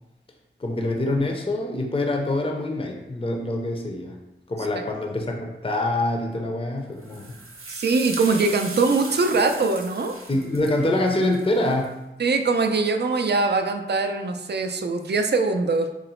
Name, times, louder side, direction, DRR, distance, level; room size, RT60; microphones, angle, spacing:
voice 1, 0.6-4.2 4.5-7.4 10.3-12.0, left 1 dB, 25° left, 1 dB, 0.5 m, -25 dB
sound 1, 7.0-11.9, right 3 dB, 90° right, 0.6 m, -38 dB
voice 2, 7.7-10.2 12.2-15.9, right 3 dB, 55° right, 6 dB, 0.4 m, -22 dB
3.8 x 2.0 x 4.2 m, 0.94 s
wide cardioid pair, 75°, 21 cm